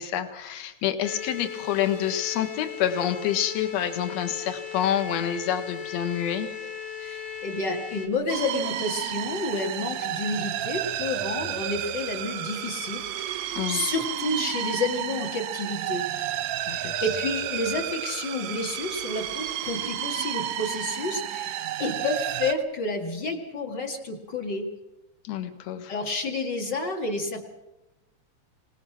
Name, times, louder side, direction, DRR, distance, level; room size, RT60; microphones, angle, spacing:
voice 1, 0.0-6.5 13.6-13.8 16.7-17.0 25.2-25.9, left 10 dB, 60° left, 9 dB, 2.4 m, -28 dB
sound 1, 1.0-8.1, left 9 dB, 80° left, 3.9 m, -37 dB
voice 2, 7.0-16.1 16.7-24.7 25.9-27.5, left 2 dB, 35° left, 3 dB, 2.3 m, -30 dB
sound 2, 8.3-22.5, right 12 dB, 70° right, 1.7 m, -31 dB
25.5 x 19.0 x 6.0 m, 0.98 s
omnidirectional pair, 3.8 m